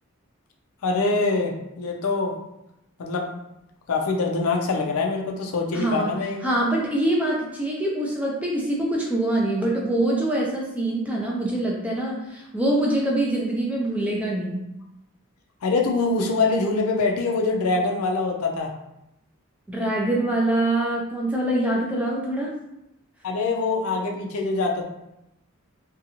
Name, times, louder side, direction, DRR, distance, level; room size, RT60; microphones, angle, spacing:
voice 1, 0.8-2.4 3.0-3.3 3.9-6.4 15.6-18.7 23.2-24.9, left 3 dB, 75° left, 1 dB, 0.4 m, -24 dB
voice 2, 5.7-6.1 6.4-14.6 19.7-22.5, right 1 dB, 5° right, -3 dB, 0.4 m, -24 dB
2.6 x 2.3 x 2.8 m, 0.87 s
head